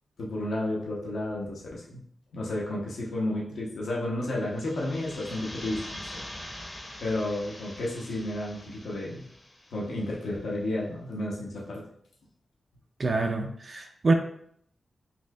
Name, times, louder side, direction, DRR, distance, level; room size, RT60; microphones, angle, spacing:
voice 1, 0.2-2.0 2.3-6.2 7.0-9.2 9.7-11.8, left 1 dB, 80° left, -3 dB, 0.8 m, -32 dB
sound 1, 4.4-10.1, left 1 dB, 20° left, 0.6 m, -43 dB
voice 2, 13.0-14.1, right 3 dB, 40° right, 4 dB, 0.3 m, -26 dB
4.2 x 2.7 x 2.3 m, 0.67 s
wide cardioid pair, 120°, 0 cm